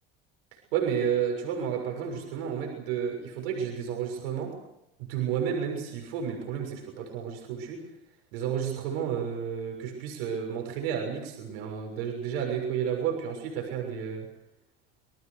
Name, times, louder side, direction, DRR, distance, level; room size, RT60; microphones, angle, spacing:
voice 1, 0.5-4.5 5.0-7.8 8.3-14.3, right 8 dB, 80° right, 1 dB, 6.7 m, -31 dB
28.0 x 20.5 x 6.7 m, 0.84 s
hypercardioid pair, 80°, 29 cm